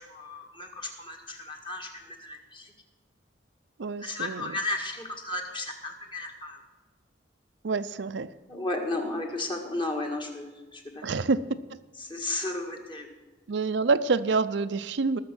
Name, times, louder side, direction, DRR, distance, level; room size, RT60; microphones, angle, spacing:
voice 1, 0.0-2.7 4.0-6.6 8.5-11.1 12.0-13.1, left 2 dB, 25° left, 2 dB, 1.7 m, -34 dB
voice 2, 3.8-4.5 7.6-8.3 11.0-11.4 13.5-15.2, right 4 dB, 65° right, 11 dB, 0.5 m, -27 dB
19.5 x 6.6 x 6.1 m, 1.2 s
head